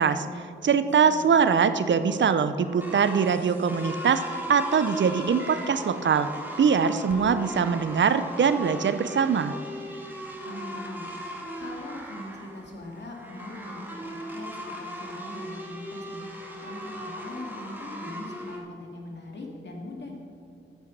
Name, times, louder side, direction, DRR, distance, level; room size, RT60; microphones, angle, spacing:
voice 1, 0.0-6.3 6.6-9.5, right 6 dB, 65° right, 12 dB, 0.6 m, -23 dB
voice 2, 0.8-1.2 10.4-20.2, left 1 dB, 60° left, -1 dB, 2.2 m, -41 dB
sound 1, 1.4-18.6, equal, 10° right, 2.2 m, -39 dB
10.5 x 8.3 x 5.3 m, 2.3 s
cardioid pair, 45°, 20 cm